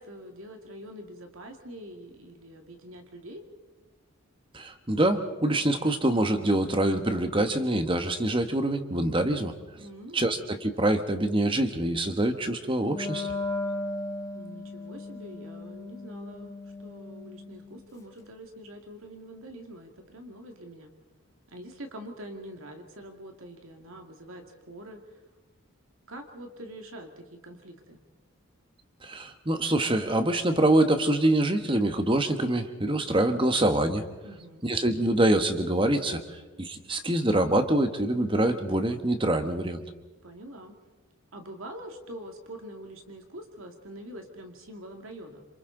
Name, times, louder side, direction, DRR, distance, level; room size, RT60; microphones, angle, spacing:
voice 1, 0.0-3.4 9.7-10.3 14.3-20.9 21.5-25.2 26.1-28.0 34.2-34.7 40.2-40.7 41.3-45.5, right 1 dB, 75° right, 4 dB, 2.2 m, -44 dB
voice 2, 4.5-9.5 10.1-13.3 29.0-34.0 34.6-36.2 36.6-39.8, right 1 dB, 25° right, 7 dB, 1.3 m, -25 dB
Wind instrument woodwind instrument, 12.8-17.9, left 2 dB, 15° left, 1.4 m, -36 dB
27.5 x 26.5 x 3.9 m, 1.2 s
head